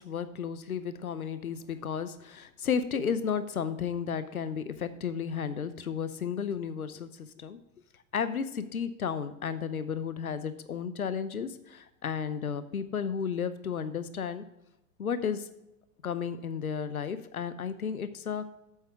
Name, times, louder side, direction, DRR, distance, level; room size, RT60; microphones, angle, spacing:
voice 1, 0.0-7.6 8.1-14.4 15.0-15.5 16.0-18.5, left 7 dB, 80° left, 13 dB, 0.8 m, -33 dB
8.4 x 7.3 x 4.7 m, 0.86 s
figure-of-eight pair, 90°, 43 cm